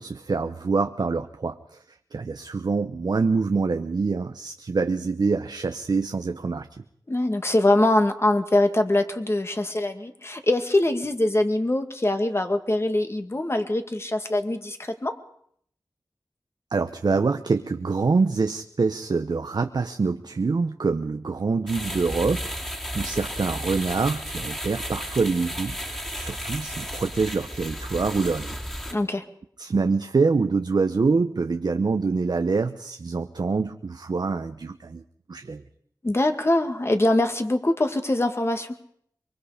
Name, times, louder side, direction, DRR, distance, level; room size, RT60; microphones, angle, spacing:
voice 1, 0.0-6.8 16.7-22.4 22.9-28.6 29.6-35.0 35.3-35.6, right 4 dB, 70° right, 7 dB, 0.9 m, -25 dB
voice 2, 7.1-15.1 28.9-29.2 36.0-38.7, left 1 dB, 35° left, 6 dB, 2.1 m, -23 dB
sound 1, 21.7-28.9, equal, 5° left, 2.9 m, -33 dB
24.0 x 24.0 x 5.1 m, 0.64 s
wide cardioid pair, 75°, 7 cm